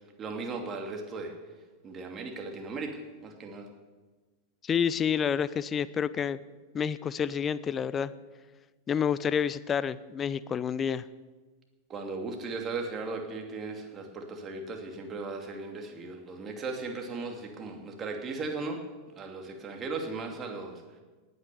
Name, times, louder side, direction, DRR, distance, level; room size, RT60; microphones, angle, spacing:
voice 1, 0.2-1.3 1.8-3.7 11.9-18.8 19.2-20.8, right 3 dB, 25° right, 4 dB, 2.7 m, -37 dB
voice 2, 4.6-6.4 6.7-8.1 8.9-11.1, left 7 dB, 25° left, 17 dB, 0.6 m, -29 dB
18.5 x 9.5 x 7.0 m, 1.3 s
figure-of-eight pair, 90°, 0 cm